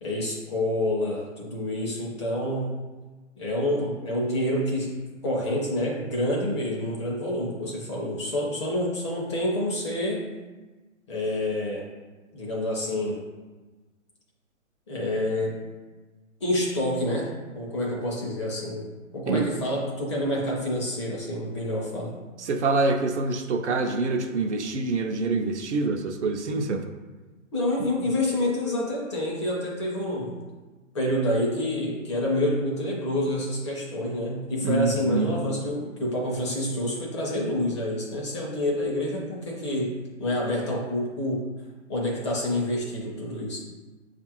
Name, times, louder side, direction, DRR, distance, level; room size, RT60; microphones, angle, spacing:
voice 1, 0.0-2.8 3.4-5.0 5.2-10.2 11.1-11.9 12.3-13.2 14.9-15.6 16.4-22.1 27.5-30.3 30.9-41.5 41.9-43.6, left 1 dB, 20° left, -3 dB, 0.6 m, -28 dB
voice 2, 22.4-26.8 34.6-35.3, right 3 dB, 60° right, 4 dB, 0.6 m, -26 dB
6.6 x 2.5 x 2.9 m, 1.3 s
hypercardioid pair, 145°, 39 cm